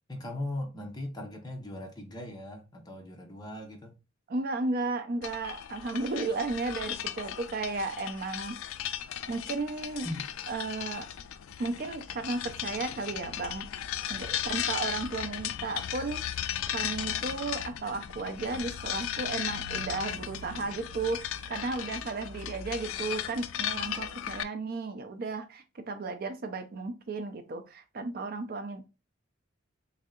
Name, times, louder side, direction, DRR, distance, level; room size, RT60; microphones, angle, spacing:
voice 1, 0.1-3.9 10.0-10.2, left 1 dB, 20° left, 0.7 m, -38 dB
voice 2, 4.3-8.7 9.3-10.1 10.5-11.1 11.6-13.7 14.1-16.4 16.7-28.9, right 3 dB, 45° right, 0.4 m, -34 dB
sound 1, 5.2-24.4, left 10 dB, 85° left, 0.3 m, -36 dB
3.2 x 2.7 x 3.6 m
head